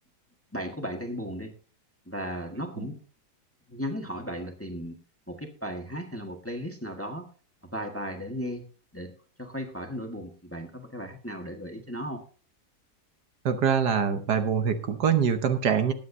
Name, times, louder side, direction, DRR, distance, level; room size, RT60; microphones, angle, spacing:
voice 1, 0.5-1.5 2.0-3.0 3.7-5.0 5.3-7.3 7.7-8.6 8.9-9.1 9.4-12.2, equal, 10° left, 3 dB, 1.4 m, -35 dB
voice 2, 13.4-15.9, right 7 dB, 70° right, 8 dB, 1.6 m, -24 dB
20.0 x 8.7 x 2.7 m, 0.38 s
omnidirectional pair, 1.9 m